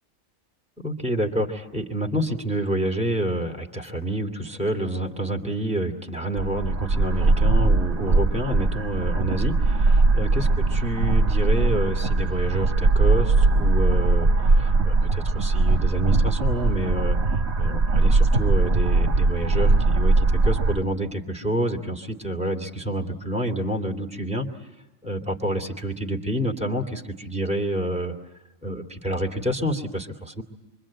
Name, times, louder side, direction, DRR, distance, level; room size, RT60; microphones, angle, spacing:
voice 1, 0.8-17.2 17.6-24.5 25.0-28.1 28.6-30.4, right 1 dB, 5° right, 3 dB, 2.6 m, -28 dB
sound 1, 6.4-20.8, right 3 dB, 55° right, 1.7 m, -20 dB
26.0 x 24.5 x 8.7 m, 1.0 s
omnidirectional pair, 1.4 m